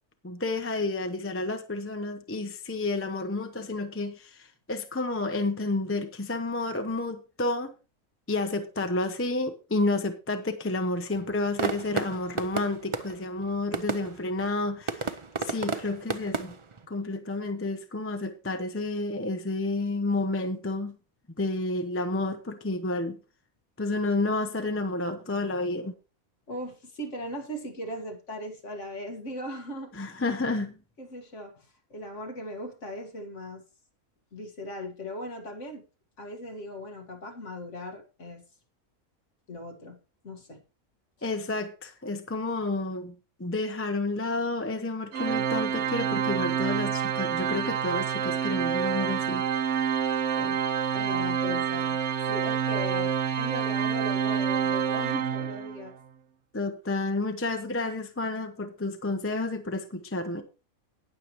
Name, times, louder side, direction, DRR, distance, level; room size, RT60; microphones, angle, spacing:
voice 1, 0.2-7.7 8.3-15.1 15.4-16.5 16.9-20.9 21.4-23.2 23.8-25.9 30.0-30.7 41.2-43.1 43.4-49.4 56.5-60.4, left 2 dB, 10° left, 0.7 m, -30 dB
sound 1, 11.1-16.9, right 4 dB, 35° right, 0.5 m, -34 dB
voice 2, 26.5-30.4 31.0-33.6 34.3-35.9 36.2-38.4 39.5-40.0 40.2-40.6 41.2-41.3 50.4-50.6 50.9-52.0 52.2-55.9, left 1 dB, 55° left, 2.1 m, -38 dB
Organ, 45.1-55.9, right 8 dB, 60° right, 1.0 m, -28 dB
18.5 x 6.8 x 3.1 m
omnidirectional pair, 1.5 m